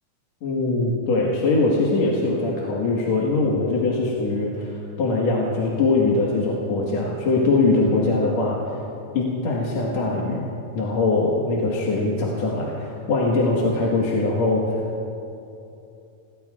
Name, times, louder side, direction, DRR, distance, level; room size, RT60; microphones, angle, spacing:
voice 1, 0.4-8.6 9.1-10.4 10.7-14.8, left 3 dB, 70° left, -4 dB, 2.7 m, -22 dB
26.0 x 19.0 x 2.4 m, 2.7 s
omnidirectional pair, 3.3 m